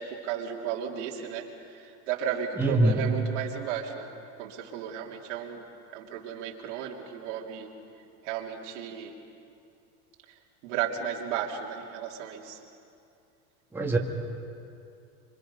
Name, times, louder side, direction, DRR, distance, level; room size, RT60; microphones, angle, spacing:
voice 1, 0.0-1.4 1.8-4.1 4.4-5.7 5.9-7.7 8.2-9.1 10.6-12.6, right 8 dB, 80° right, 0 dB, 3.0 m, -34 dB
voice 2, 2.6-3.0 13.7-14.0, right 1 dB, 5° right, -1 dB, 2.0 m, -23 dB
27.0 x 24.5 x 5.5 m, 2.6 s
supercardioid pair, 125°, 36 cm